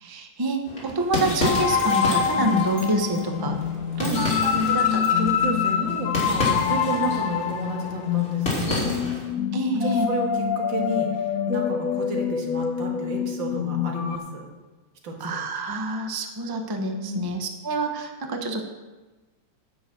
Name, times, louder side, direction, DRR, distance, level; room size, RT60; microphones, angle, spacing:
voice 1, 0.0-3.6 4.0-4.9 9.5-10.1 15.2-18.6, right 2 dB, 20° right, 4 dB, 0.6 m, -27 dB
sound 1, 0.6-9.3, left 1 dB, 30° left, 3.0 m, -31 dB
sound 2, 1.4-14.2, left 8 dB, 55° left, 1.1 m, -25 dB
voice 2, 5.2-9.0 9.8-14.5 15.0-15.4 17.0-17.3, right 2 dB, 80° right, 1 dB, 2.4 m, -32 dB
10.5 x 6.1 x 7.7 m, 1.2 s
omnidirectional pair, 2.0 m